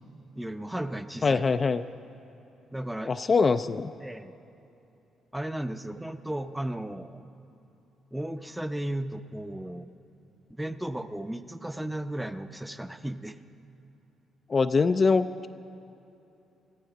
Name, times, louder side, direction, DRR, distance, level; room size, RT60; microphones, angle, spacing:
voice 1, 0.3-1.4 2.7-3.1 4.0-4.3 5.3-7.2 8.1-9.9 10.6-13.4, right 1 dB, 5° right, 9 dB, 0.6 m, -35 dB
voice 2, 1.2-1.8 3.1-3.9 14.5-15.3, left 4 dB, 35° left, 9 dB, 0.4 m, -23 dB
23.0 x 14.0 x 3.9 m, 2.9 s
cardioid pair, 90°, 0 cm